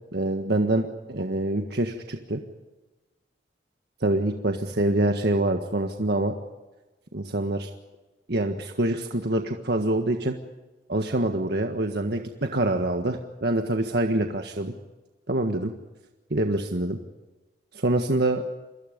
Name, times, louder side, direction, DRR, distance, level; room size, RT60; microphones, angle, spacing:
voice 1, 0.1-2.4 4.0-6.3 7.1-7.7 8.3-10.4 10.9-14.7 15.3-15.7 16.3-17.0 17.7-18.4, right 1 dB, 65° right, 4 dB, 1.6 m, -25 dB
28.5 x 23.5 x 5.3 m, 1.2 s
head